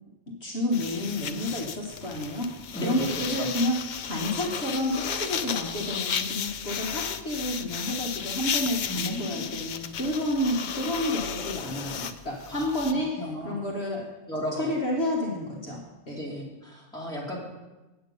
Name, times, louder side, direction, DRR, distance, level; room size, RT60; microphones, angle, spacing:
voice 1, 0.4-2.5 2.8-3.8 4.0-14.1 14.6-16.2, left 1 dB, 55° left, -1 dB, 1.5 m, -30 dB
sound 1, 0.7-12.9, left 7 dB, 75° left, 0.4 m, -34 dB
voice 2, 2.7-3.5 8.9-9.4 12.5-12.7 13.2-13.6 14.3-14.7 16.1-17.4, equal, 5° left, -5 dB, 2.4 m, -34 dB
8.8 x 8.2 x 5.3 m, 1.1 s
omnidirectional pair, 1.4 m